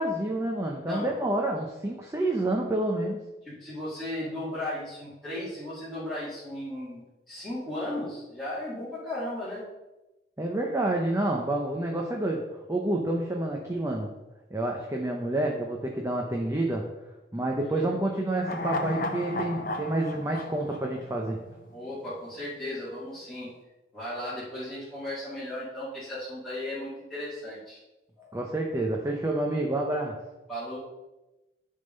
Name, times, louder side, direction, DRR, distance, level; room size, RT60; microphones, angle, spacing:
voice 1, 0.0-3.2 10.4-14.1 14.5-16.9 17.3-21.4 28.3-30.2, right 1 dB, 15° right, 0 dB, 0.7 m, -28 dB
voice 2, 0.9-1.2 3.4-9.6 17.8-18.0 21.7-23.5 23.9-27.8 28.2-28.4 30.5-30.8, left 1 dB, ahead, -13 dB, 2.2 m, -36 dB
sound 1, 18.4-21.8 22.1-22.2, left 2 dB, 50° left, 0.8 m, -34 dB
10.0 x 3.7 x 5.3 m, 1.0 s
head